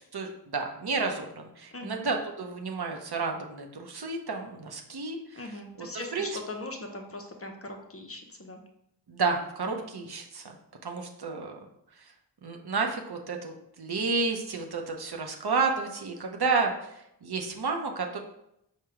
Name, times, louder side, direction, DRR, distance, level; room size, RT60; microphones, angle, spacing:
voice 1, 0.1-5.2 5.8-5.9 6.1-6.3 9.1-10.4 10.8-11.6 12.4-18.2, right 4 dB, 65° right, 2 dB, 0.7 m, -31 dB
voice 2, 1.7-2.0 5.3-8.6 9.6-9.9, left 2 dB, 35° left, 3 dB, 0.6 m, -40 dB
4.6 x 2.2 x 4.8 m, 0.79 s
wide cardioid pair, 55°, 42 cm